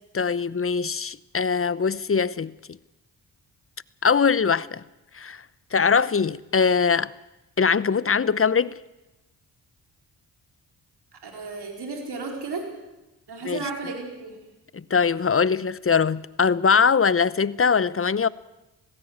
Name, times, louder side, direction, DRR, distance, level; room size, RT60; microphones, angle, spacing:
voice 1, 0.1-2.5 4.0-4.8 5.1-5.4 5.7-7.1 7.6-8.8 13.4-13.6 14.7-18.3, left 5 dB, 30° left, 0.9 m, -22 dB
voice 2, 11.1-12.7 13.3-14.4, right 4 dB, 65° right, 4.6 m, -34 dB
18.5 x 16.0 x 9.4 m
supercardioid pair, 45°, 43 cm